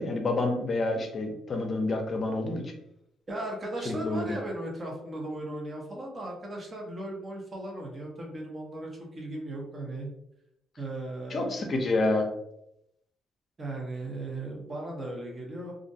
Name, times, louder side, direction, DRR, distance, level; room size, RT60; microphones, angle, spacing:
voice 1, 0.0-2.7 3.9-4.4 11.3-12.3, left 2 dB, 45° left, 3 dB, 0.5 m, -28 dB
voice 2, 3.3-10.1 10.8-11.6 13.6-15.7, right 1 dB, 35° right, 0 dB, 0.8 m, -37 dB
2.4 x 2.1 x 2.7 m, 0.80 s
cardioid pair, 90°, 0 cm